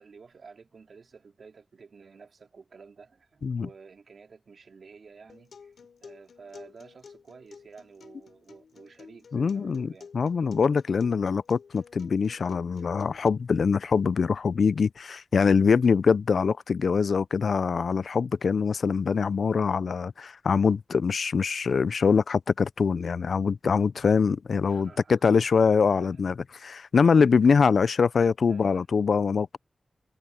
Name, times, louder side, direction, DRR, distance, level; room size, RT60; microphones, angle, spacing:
voice 1, 0.0-5.7 6.0-10.1 24.6-25.5 25.8-26.2 28.5-28.9, right 5 dB, 65° right, 3.1 m, -51 dB
Acoustic guitar, 5.3-13.3, left 6 dB, 85° left, 4.8 m, -51 dB
voice 2, 9.3-9.9 10.1-29.6, left 5 dB, 65° left, 0.3 m, -23 dB
wide cardioid pair, 135°, 0 cm